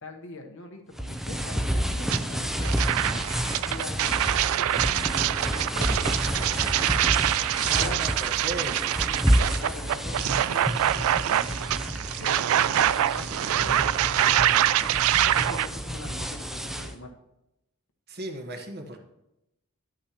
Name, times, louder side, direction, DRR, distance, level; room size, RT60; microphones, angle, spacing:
voice 1, 0.0-2.8 3.6-6.5 7.6-8.0 9.5-11.6 12.2-17.1, left 2 dB, 60° left, 4 dB, 1.0 m, -42 dB
sound 1, 1.0-16.9, equal, ahead, 0.5 m, -30 dB
sound 2, 2.1-2.2 2.6-15.7, right 12 dB, 70° right, 0.3 m, -25 dB
voice 2, 7.6-9.3 18.1-19.0, right 2 dB, 45° right, 3 dB, 1.2 m, -36 dB
11.5 x 8.7 x 2.9 m, 0.89 s
head